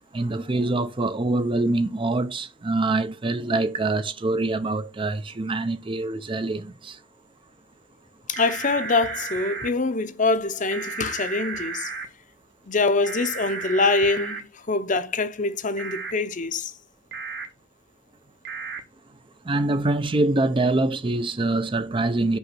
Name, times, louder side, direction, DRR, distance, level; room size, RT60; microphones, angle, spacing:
voice 1, 0.1-7.0 19.5-22.4, right 2 dB, 25° right, 0.5 m, -24 dB
voice 2, 8.3-11.9 12.7-16.7, left 3 dB, 40° left, 0.8 m, -24 dB
sound 1, 8.3-9.7 10.7-12.1 13.0-14.4 15.8-16.1 17.1-17.5 18.4-18.8, right 5 dB, 60° right, 1.3 m, -33 dB
5.6 x 5.1 x 5.9 m
head